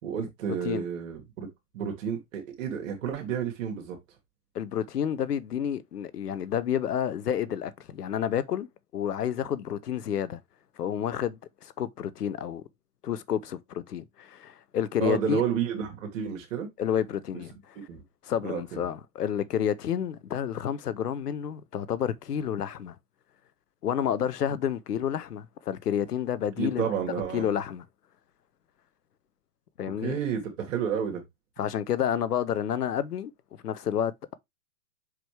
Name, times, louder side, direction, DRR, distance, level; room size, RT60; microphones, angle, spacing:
voice 1, 0.0-1.5 1.7-4.0 15.0-16.7 17.9-18.0 18.4-18.8 26.6-27.5 30.0-31.2, right 8 dB, 55° right, 2.2 m, -31 dB
voice 2, 4.5-8.7 8.9-10.4 10.8-12.6 13.0-15.4 16.8-17.8 18.2-22.9 23.8-26.9 27.3-27.8 29.8-30.2 31.6-33.3 33.6-34.3, left 9 dB, 80° left, 0.9 m, -30 dB
6.0 x 4.8 x 3.4 m
hypercardioid pair, 125°, 46 cm